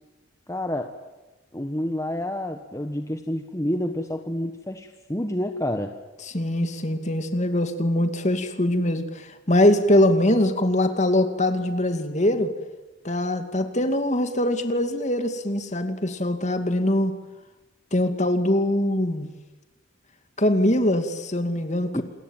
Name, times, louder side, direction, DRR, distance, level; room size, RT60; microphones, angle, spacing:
voice 1, 0.5-0.9 1.5-5.9 21.9-22.0, left 1 dB, 15° left, 6 dB, 1.3 m, -28 dB
voice 2, 6.3-12.5 13.0-17.1 17.9-19.3 20.4-22.0, left 1 dB, 35° left, 7 dB, 2.4 m, -22 dB
28.0 x 22.0 x 9.1 m, 1.1 s
head